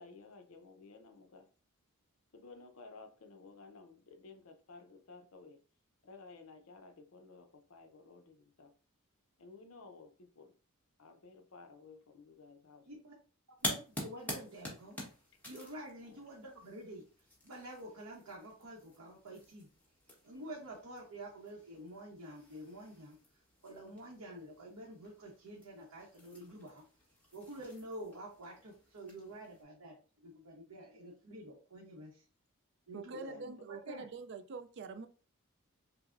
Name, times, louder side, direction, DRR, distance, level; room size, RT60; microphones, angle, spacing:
voice 1, 0.0-1.5 2.3-5.6 6.0-8.7 9.4-10.6 11.0-12.9 16.0-16.3 33.1-33.4, left 3 dB, 65° left, 0.6 m, -55 dB
sound 1, 13.6-29.6, left 1 dB, 10° left, 1.0 m, -48 dB
voice 2, 13.6-15.0 15.4-17.1 17.4-19.7 20.2-23.2 23.6-26.8 27.3-32.2 32.9-33.2 33.9-34.0, right 1 dB, 85° right, 0.9 m, -48 dB
voice 3, 32.9-35.1, right 4 dB, 55° right, 0.4 m, -45 dB
5.7 x 2.0 x 2.4 m
head